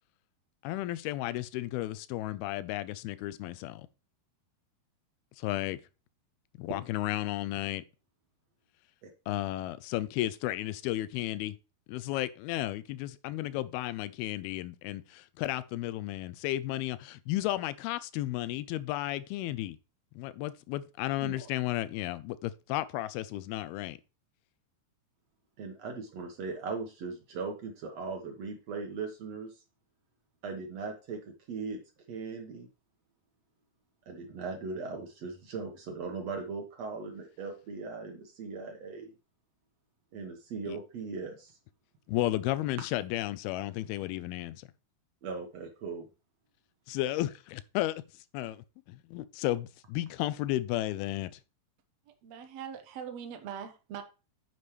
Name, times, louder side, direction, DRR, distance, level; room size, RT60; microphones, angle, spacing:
voice 1, 0.6-3.9 5.4-5.8 6.6-7.8 9.3-11.6 11.9-19.8 20.2-24.0 40.7-40.8 42.1-44.7 46.9-48.0 48.3-51.3, left 15 dB, 80° left, 2.5 m, -33 dB
voice 2, 25.6-29.6 30.4-31.2 31.5-31.8 32.1-32.7 34.1-39.1 40.1-41.6 45.2-46.1, right 4 dB, 65° right, 1.7 m, -39 dB
voice 3, 52.1-54.0, right 8 dB, 85° right, 1.4 m, -42 dB
9.6 x 6.9 x 3.2 m
omnidirectional pair, 4.6 m